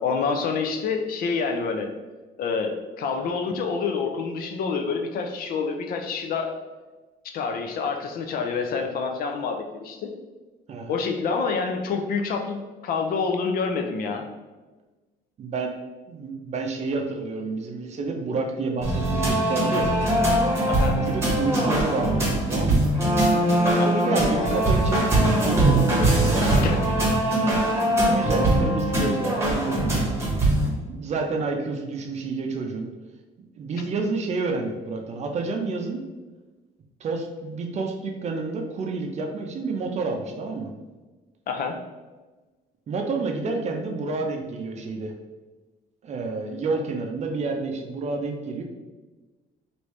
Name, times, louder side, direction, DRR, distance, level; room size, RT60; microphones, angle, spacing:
voice 1, 0.0-1.9 2.4-6.5 7.3-10.1 10.9-14.3 20.7-21.0 23.6-23.9 26.6-26.8 41.5-41.8, left 5 dB, 60° left, 4 dB, 0.5 m, -27 dB
voice 2, 15.4-15.8 16.1-19.9 20.9-22.9 23.8-26.8 27.4-30.1 30.6-32.9 33.6-36.0 37.0-40.7 42.9-45.1 46.0-48.6, right 3 dB, 40° right, 2 dB, 0.5 m, -29 dB
sound 1, 18.8-30.7, right 1 dB, 15° right, 1.0 m, -21 dB
3.2 x 2.6 x 3.1 m, 1.3 s
cardioid pair, 110°, 17 cm